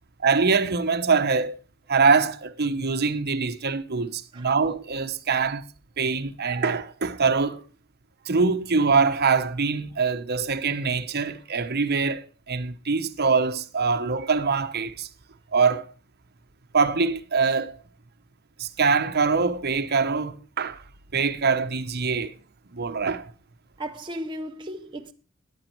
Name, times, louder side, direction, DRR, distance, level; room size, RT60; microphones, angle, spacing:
voice 1, 0.2-1.6 1.9-5.6 6.0-7.6 8.2-15.1 15.5-15.9 16.7-17.8 18.6-20.8 21.1-22.3 22.7-23.3, right 4 dB, 50° right, 1.0 m, -24 dB
voice 2, 23.8-25.1, equal, 25° right, 0.7 m, -35 dB
14.5 x 10.0 x 4.5 m
head